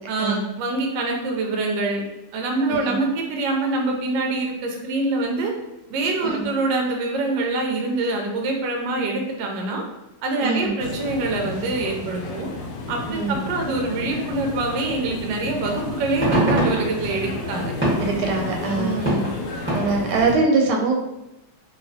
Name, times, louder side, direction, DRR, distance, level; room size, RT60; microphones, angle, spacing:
voice 1, 0.1-2.0 2.3-5.5 5.9-9.8 10.2-12.5 12.9-17.7 18.7-19.3, right 2 dB, 70° right, 1 dB, 1.1 m, -25 dB
voice 2, 10.4-10.7 13.1-13.4 18.0-19.0 19.7-21.0, right 3 dB, 85° right, 0 dB, 1.5 m, -23 dB
sound 1, 10.8-20.4, left 3 dB, 75° left, 1.0 m, -32 dB
sound 2, 15.2-15.3 15.8-20.4, right 1 dB, 10° right, 0.6 m, -26 dB
3.1 x 2.9 x 2.7 m, 0.93 s
omnidirectional pair, 2.4 m